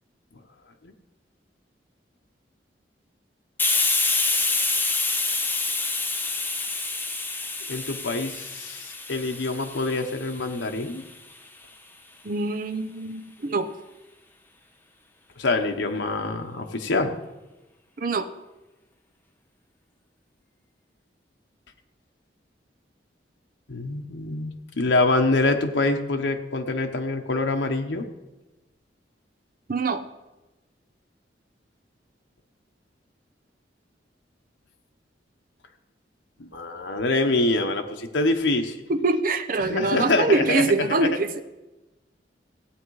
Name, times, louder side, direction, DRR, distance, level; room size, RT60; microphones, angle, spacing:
Hiss, 3.6-11.0, left 3 dB, 10° left, 1.0 m, -27 dB
voice 1, 7.7-11.0 15.4-17.1 23.7-28.1 36.4-38.8 39.6-41.1, left 2 dB, 90° left, 4 dB, 1.0 m, -25 dB
voice 2, 12.2-13.7 18.0-18.3 29.7-30.0 38.9-41.4, right 3 dB, 50° right, 9 dB, 0.7 m, -24 dB
15.5 x 8.5 x 4.8 m, 1.1 s
head